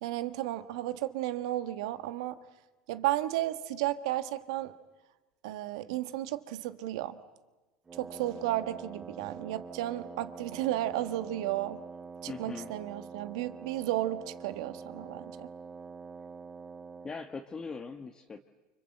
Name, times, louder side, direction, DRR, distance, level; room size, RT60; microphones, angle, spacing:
voice 1, 0.0-2.4 2.9-4.7 5.4-7.2 7.9-11.8 12.2-15.5, right 14 dB, 75° right, 11 dB, 1.5 m, -33 dB
Wind instrument woodwind instrument, 7.9-17.2, right 5 dB, 20° right, 1.1 m, -46 dB
voice 2, 12.3-12.7 17.0-18.4, left 4 dB, 25° left, 5 dB, 1.3 m, -40 dB
29.5 x 25.5 x 7.9 m, 1.2 s
hypercardioid pair, 95°, 3 cm